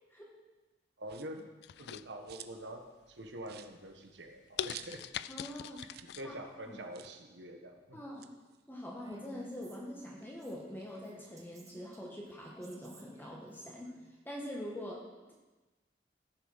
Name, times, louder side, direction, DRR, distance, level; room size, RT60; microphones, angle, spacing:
sound 1, 1.0-1.5 1.9-2.7 3.0-3.1 3.4-5.3 5.6-5.7 5.9-6.2 6.4-6.5 6.9-7.2 8.0-9.7 10.1-11.6, right 10 dB, 60° right, 0.6 m, -53 dB
voice 1, 1.0-1.5 1.8-5.0 6.2-8.0, right 1 dB, 85° right, 4 dB, 1.5 m, -46 dB
sound 2, 1.6-2.6 3.1-3.5 4.0-4.1 4.6-6.3 6.6-6.7, left 10 dB, 65° left, 0.3 m, -41 dB
voice 2, 5.3-5.8 6.2-6.4 6.7-6.8 7.9-8.3 8.7-13.9 14.2-15.0, equal, 10° left, -3 dB, 1.5 m, -44 dB
Female speech woman speaking, 8.9-14.0, right 1 dB, 20° right, 1.3 m, -57 dB
15.0 x 6.9 x 5.8 m, 1.2 s
head